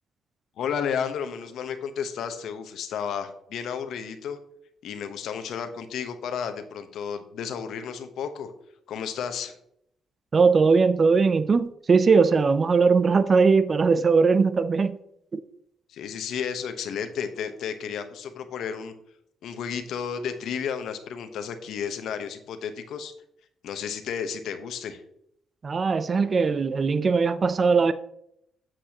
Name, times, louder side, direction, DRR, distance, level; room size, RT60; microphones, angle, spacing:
voice 1, 0.6-4.4 4.8-8.5 8.9-9.5 15.9-18.9 19.4-23.1 23.6-25.0, left 7 dB, 75° left, 1.0 m, -32 dB
voice 2, 10.3-15.0 15.3-15.4 25.6-27.9, right 4 dB, 40° right, 0.5 m, -20 dB
8.5 x 7.6 x 3.0 m
cardioid pair, 90°, 0 cm